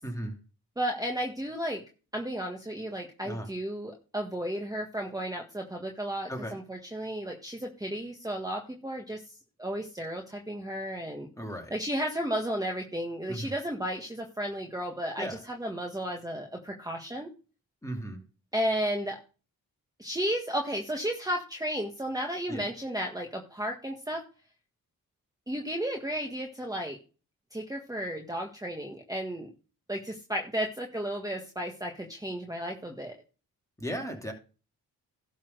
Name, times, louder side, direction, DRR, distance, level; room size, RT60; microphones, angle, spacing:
voice 1, 0.0-0.4 3.2-3.5 6.3-6.6 11.4-11.8 13.3-13.5 15.2-15.4 17.8-18.2 22.5-22.7 33.8-34.3, equal, 10° left, 2.6 m, -36 dB
voice 2, 0.8-1.8 2.1-9.2 9.6-11.3 11.7-17.3 18.5-19.2 20.0-24.2 25.5-27.0 27.5-29.5 29.9-33.1, equal, 10° right, 1.6 m, -33 dB
12.0 x 4.2 x 6.6 m
cardioid pair, 65°, 36 cm